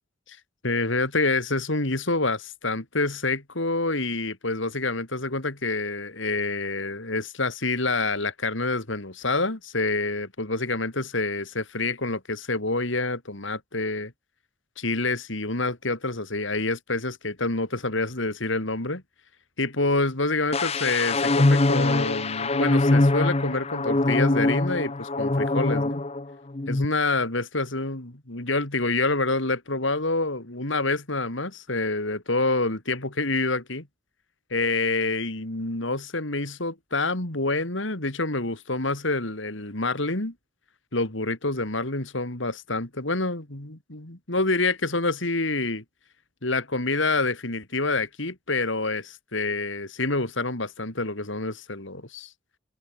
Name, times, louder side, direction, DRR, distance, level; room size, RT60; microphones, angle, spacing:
voice 1, 0.6-14.1 14.8-19.0 19.6-26.0 26.7-33.9 34.5-40.3 40.9-45.8 46.4-52.3, left 3 dB, 70° left, 3.3 m, -27 dB
sound 1, 20.5-26.2 26.5-26.9, left 2 dB, 30° left, 0.8 m, -23 dB
head